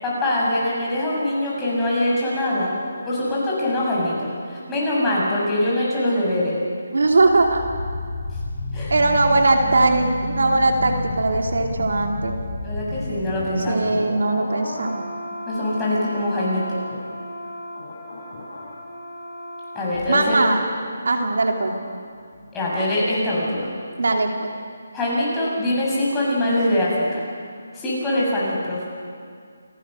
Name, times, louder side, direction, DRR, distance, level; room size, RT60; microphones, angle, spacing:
voice 1, 0.0-2.7 3.0-6.6 8.7-8.9 12.6-13.9 15.5-16.8 19.8-20.5 22.5-23.7 24.9-27.1 27.7-28.9, left 1 dB, 10° left, -6 dB, 6.9 m, -23 dB
voice 2, 6.9-7.6 8.9-12.4 13.7-15.0 20.1-20.6 21.0-21.7 24.0-24.5, right 2 dB, 75° right, 2 dB, 2.8 m, -20 dB
sound 1, 7.1-22.0 22.3-22.5, left 2 dB, 35° left, 7.2 m, -32 dB
28.5 x 18.5 x 6.6 m, 2.1 s
figure-of-eight pair, 160°, 0 cm